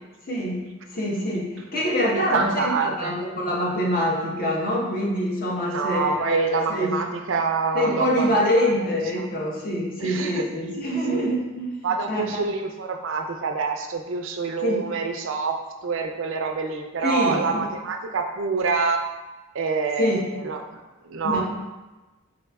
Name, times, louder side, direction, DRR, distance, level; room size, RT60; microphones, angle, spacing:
voice 1, 0.3-7.0 7.7-12.5 14.6-14.8 17.0-17.6 20.0-20.2 21.2-21.4, equal, 40° left, -4 dB, 0.9 m, -25 dB
voice 2, 2.0-3.1 5.6-8.3 10.0-10.4 11.1-11.4 11.8-15.6 15.8-19.0 19.5-20.8 21.0-21.4, right 4 dB, 70° right, 4 dB, 0.4 m, -26 dB
4.1 x 4.1 x 2.3 m, 1.1 s
head